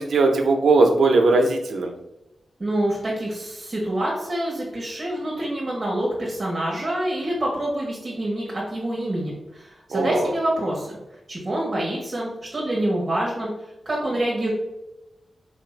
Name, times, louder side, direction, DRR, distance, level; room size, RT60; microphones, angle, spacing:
voice 1, 0.0-1.9 9.9-10.3, right 3 dB, 80° right, 3 dB, 0.6 m, -19 dB
voice 2, 2.6-10.9 11.3-13.5 13.8-14.5, right 1 dB, 25° right, -4 dB, 0.9 m, -26 dB
4.2 x 2.5 x 3.2 m, 0.94 s
wide cardioid pair, 145°, 0 cm